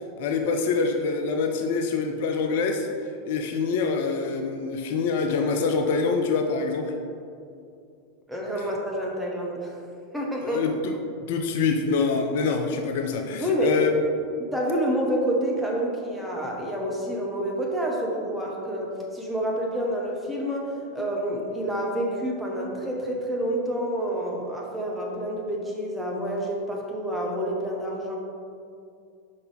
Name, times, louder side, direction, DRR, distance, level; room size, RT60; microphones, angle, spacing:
voice 1, 0.2-6.9 10.4-10.9 11.3-13.9, left 4 dB, 60° left, 4 dB, 0.5 m, -25 dB
voice 2, 8.3-9.8 10.1-10.6 13.4-13.8 14.4-28.2, right 1 dB, 5° right, -3 dB, 1.3 m, -28 dB
5.6 x 4.0 x 5.2 m, 2.4 s
figure-of-eight pair, 90°, 0 cm